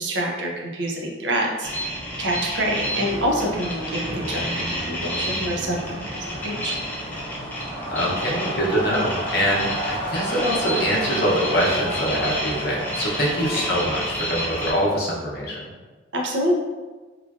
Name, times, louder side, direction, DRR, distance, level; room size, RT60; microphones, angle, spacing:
voice 1, 0.0-1.7 2.2-6.7 13.4-13.5 16.1-16.6, equal, 75° right, -1 dB, 0.5 m, -26 dB
sound 1, 1.6-14.7, equal, 10° left, 0.5 m, -31 dB
sound 2, 2.0-14.7, right 1 dB, 30° left, 0.9 m, -34 dB
sound 3, 2.8-7.8, right 1 dB, 25° right, 0.9 m, -36 dB
voice 2, 7.9-15.6, equal, 55° left, -4 dB, 0.7 m, -24 dB
3.0 x 2.4 x 2.4 m, 1.3 s
head